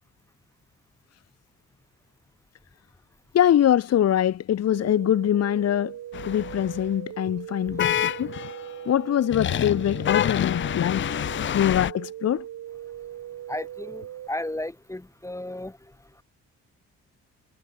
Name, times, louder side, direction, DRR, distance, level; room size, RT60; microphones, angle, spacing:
voice 1, 3.3-6.0 6.2-8.3 8.9-11.1 11.5-12.4, left 11 dB, 55° left, 1.0 m, -23 dB
sound 1, 4.7-14.3, right 11 dB, 70° right, 2.4 m, -39 dB
sound 2, 6.1-6.8 7.8-8.7 9.3-11.9, left 10 dB, 40° left, 0.4 m, -27 dB
voice 2, 7.7-8.0 13.5-16.2, left 1 dB, 10° left, 2.7 m, -35 dB
cardioid pair, 90°, 30 cm